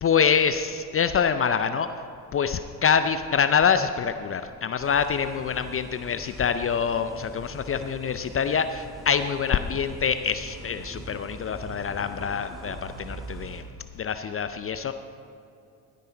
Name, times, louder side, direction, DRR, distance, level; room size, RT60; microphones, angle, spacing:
voice 1, 0.0-1.9 2.3-13.7 13.9-14.9, left 6 dB, 30° left, 10 dB, 0.5 m, -25 dB
sound 1, 4.8-13.6, right 2 dB, ahead, 2.7 m, -42 dB
15.5 x 9.2 x 4.0 m, 2.7 s
hypercardioid pair, 60°, 49 cm